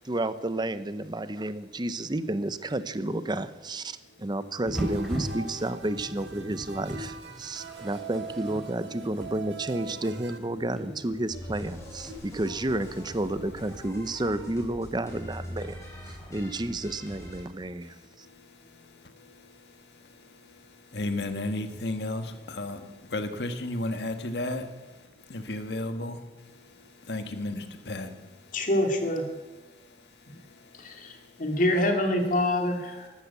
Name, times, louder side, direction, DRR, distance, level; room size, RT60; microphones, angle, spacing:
voice 1, 0.0-18.3, right 1 dB, 25° right, 13 dB, 0.8 m, -31 dB
sound 1, 4.7-12.2, equal, ahead, 3.3 m, -39 dB
sound 2, 4.7-10.4, right 5 dB, 90° right, 1.3 m, -42 dB
sound 3, 11.3-17.5, equal, 20° left, 4.4 m, -43 dB
voice 2, 20.9-22.8 23.1-24.6 25.3-26.2 27.1-28.1, left 2 dB, 75° left, 8 dB, 1.6 m, -32 dB
voice 3, 28.5-29.2 30.3-30.4 30.7-33.1, left 1 dB, 50° left, 3 dB, 2.6 m, -26 dB
14.0 x 12.0 x 8.4 m, 1.2 s
head